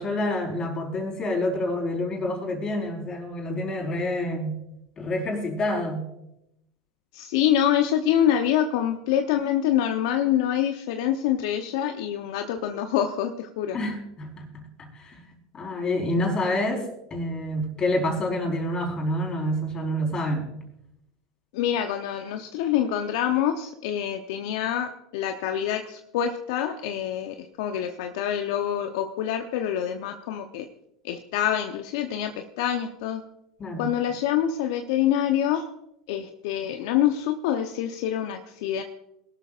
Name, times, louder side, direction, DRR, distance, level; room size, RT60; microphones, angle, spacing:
voice 1, 0.0-4.6 5.0-6.0 13.7-15.2 15.5-20.5 33.6-33.9, left 1 dB, 30° left, 2 dB, 4.3 m, -28 dB
voice 2, 7.1-13.8 21.5-30.7 31.0-33.2 33.8-35.7 36.1-38.8, left 10 dB, 70° left, 5 dB, 0.9 m, -26 dB
21.0 x 12.5 x 2.5 m, 0.84 s
hypercardioid pair, 85°, 3 cm